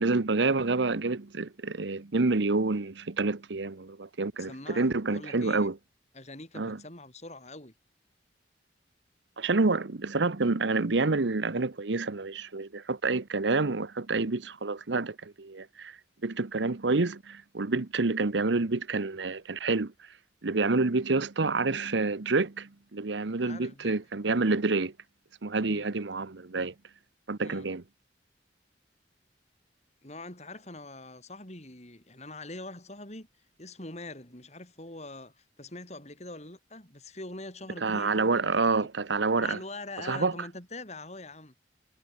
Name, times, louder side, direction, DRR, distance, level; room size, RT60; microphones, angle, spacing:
voice 1, 0.0-5.8 6.5-6.8 9.4-19.9 20.4-24.9 25.4-26.7 27.3-27.8 37.8-39.6 40.0-40.3, right 3 dB, 80° right, 1.0 m, -28 dB
voice 2, 4.4-5.7 6.1-7.7 23.4-24.0 25.6-25.9 27.4-27.7 30.0-33.3 33.6-38.6 39.4-41.5, left 2 dB, 40° left, 5.2 m, -43 dB
head